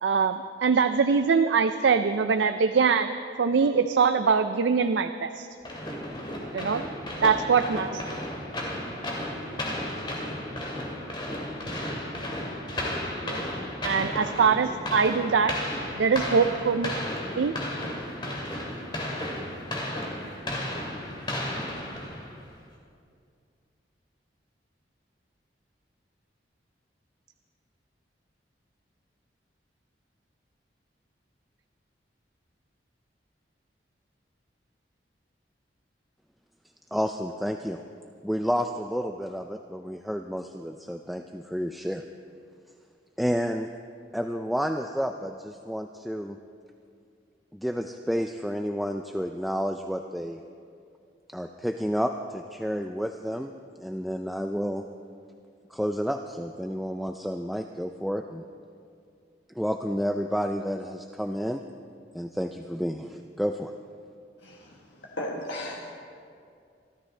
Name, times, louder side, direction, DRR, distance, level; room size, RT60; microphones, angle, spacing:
voice 1, 0.0-5.5 6.5-6.8 7.2-8.0 13.2-13.4 13.8-15.5 16.0-16.9 17.4-17.6, right 5 dB, 80° right, 9 dB, 0.4 m, -23 dB
sound 1, 5.6-22.4, left 1 dB, 25° left, 2.3 m, -33 dB
voice 2, 36.9-37.8 38.2-42.0 43.2-43.7 44.1-46.4 47.5-50.4 51.3-53.5 53.8-54.8 55.7-58.4 59.5-61.6 62.1-63.7, equal, ahead, 4 dB, 0.3 m, -30 dB
voice 3, 64.4-65.9, left 1 dB, 85° left, -2 dB, 1.4 m, -36 dB
25.5 x 13.0 x 3.3 m, 2.4 s
head